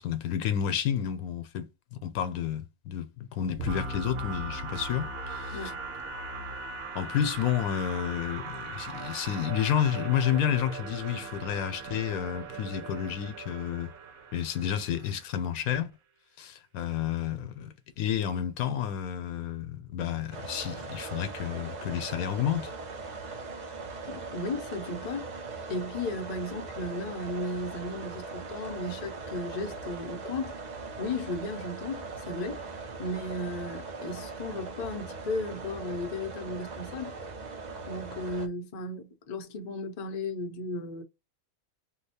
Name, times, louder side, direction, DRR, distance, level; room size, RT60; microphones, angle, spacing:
voice 1, 0.0-1.7 2.0-5.6 6.9-13.9 14.3-15.9 16.4-22.7, left 9 dB, 80° left, 1.1 m, -30 dB
sound 1, 3.6-15.4, right 3 dB, 75° right, 1.0 m, -39 dB
sound 2, 20.3-38.5, right 3 dB, 55° right, 0.5 m, -40 dB
voice 2, 24.1-25.3 25.7-30.5 31.0-32.6 33.0-37.1 37.9-41.0, left 2 dB, 50° left, 0.5 m, -35 dB
2.8 x 2.1 x 4.1 m
omnidirectional pair, 1.5 m